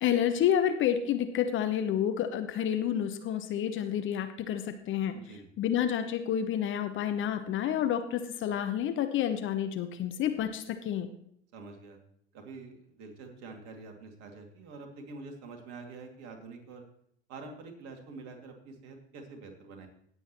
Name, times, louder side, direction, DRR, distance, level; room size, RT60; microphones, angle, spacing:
voice 1, 0.0-5.1 5.6-11.1, left 9 dB, 35° left, 8 dB, 0.9 m, -29 dB
voice 2, 5.1-5.5 11.5-12.0 12.3-16.8 17.3-19.9, right 3 dB, 50° right, 3 dB, 2.5 m, -46 dB
18.0 x 7.9 x 3.0 m, 0.69 s
figure-of-eight pair, 80°, 35 cm